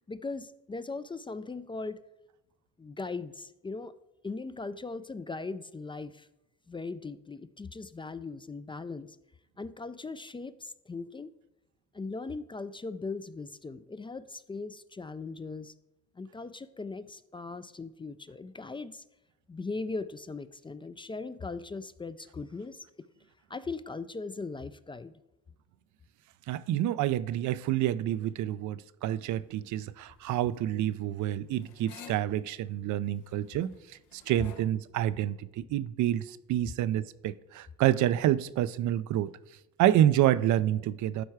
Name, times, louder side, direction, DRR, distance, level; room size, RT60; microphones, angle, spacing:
voice 1, 0.1-2.0 2.8-3.9 4.2-6.3 6.7-9.1 9.6-11.3 11.9-15.7 16.2-19.0 19.5-23.1 23.5-25.1, left 3 dB, 15° left, 0.3 m, -39 dB
voice 2, 26.5-33.7 34.1-39.3 39.8-41.2, right 12 dB, 75° right, 0.5 m, -28 dB
sound 1, 29.2-34.6, left 6 dB, 85° left, 1.0 m, -53 dB
11.5 x 4.6 x 4.7 m
cardioid pair, 90°, 30 cm